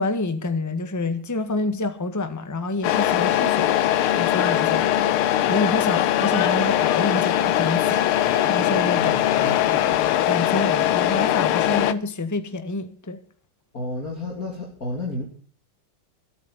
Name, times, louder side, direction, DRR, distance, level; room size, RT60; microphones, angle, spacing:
voice 1, 0.0-9.1 9.7-13.2, left 2 dB, 10° left, 1.3 m, -28 dB
Truck, 2.8-11.9, left 12 dB, 80° left, 1.8 m, -21 dB
voice 2, 8.9-9.6 9.9-10.0 13.7-15.2, left 1 dB, 40° left, 3.5 m, -31 dB
26.5 x 9.0 x 4.2 m
omnidirectional pair, 2.4 m